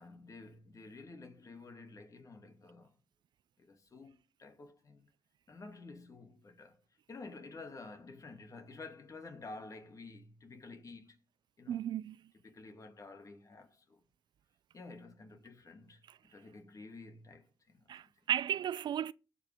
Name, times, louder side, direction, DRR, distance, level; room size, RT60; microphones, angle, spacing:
voice 1, 0.0-2.9 3.6-5.1 5.5-6.8 7.1-11.2 11.6-11.8 12.4-14.0 14.7-16.0 16.3-17.9, left 3 dB, 45° left, 2.7 m, -51 dB
voice 2, 11.7-12.3 16.1-16.2 17.9-19.1, right 10 dB, 65° right, 0.4 m, -35 dB
16.5 x 6.0 x 3.7 m
supercardioid pair, 55°, 8 cm